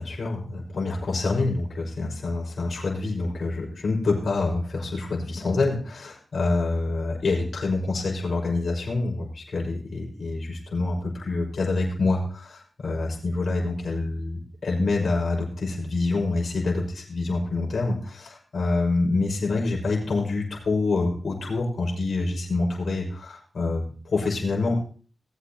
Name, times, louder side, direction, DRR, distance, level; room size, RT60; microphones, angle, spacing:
voice 1, 0.0-24.7, left 3 dB, 65° left, -1 dB, 5.7 m, -26 dB
19.5 x 8.1 x 3.0 m, 0.40 s
cardioid pair, 60°, 0 cm